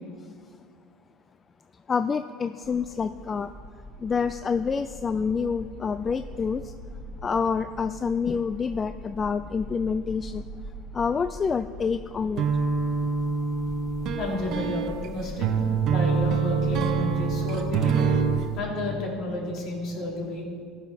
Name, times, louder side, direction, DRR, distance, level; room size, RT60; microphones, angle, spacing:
voice 1, 1.9-3.5 4.0-6.7 7.2-10.4 10.9-12.5, left 5 dB, 25° left, 11 dB, 0.3 m, -27 dB
sound 1, 2.6-18.4, equal, 15° right, 1.1 m, -42 dB
sound 2, 12.4-18.5, right 5 dB, 55° right, 0.9 m, -25 dB
voice 2, 14.2-15.5 15.9-18.0 18.5-20.4, left 1 dB, 55° left, -2 dB, 3.2 m, -31 dB
14.5 x 5.6 x 5.9 m, 2.2 s
supercardioid pair, 110°, 0 cm